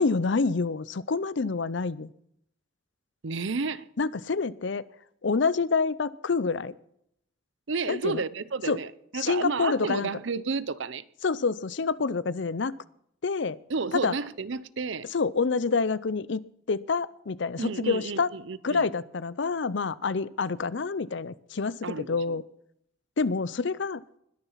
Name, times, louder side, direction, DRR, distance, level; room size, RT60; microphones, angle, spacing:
voice 1, 0.0-2.1 4.0-4.8 5.2-6.7 7.9-8.2 8.7-8.8 9.1-10.1 11.2-12.7 13.2-13.6 14.0-14.1 15.1-16.4 16.7-18.3 18.6-22.4 23.2-24.0, left 4 dB, 60° left, 0.6 m, -27 dB
voice 2, 3.2-3.9 7.7-11.0 13.7-15.1 17.6-18.9 21.8-22.4, right 4 dB, 70° right, 0.7 m, -31 dB
20.5 x 7.0 x 5.7 m
head